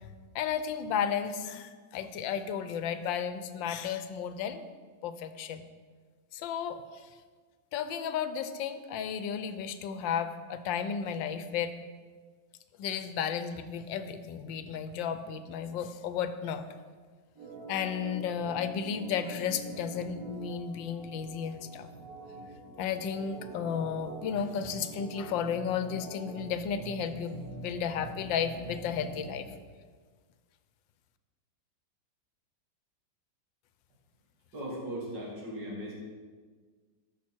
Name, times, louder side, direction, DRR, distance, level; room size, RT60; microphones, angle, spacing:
voice 1, 0.3-4.6 5.0-5.6 6.3-6.8 7.7-11.7 12.8-16.6 17.7-21.9 22.8-29.5, left 7 dB, 85° left, 10 dB, 1.4 m, -33 dB
Organ, 17.4-29.5, right 1 dB, 50° right, 1.6 m, -45 dB
voice 2, 34.5-35.9, equal, 65° right, -5 dB, 3.3 m, -38 dB
13.0 x 6.1 x 4.4 m, 1.5 s
omnidirectional pair, 2.0 m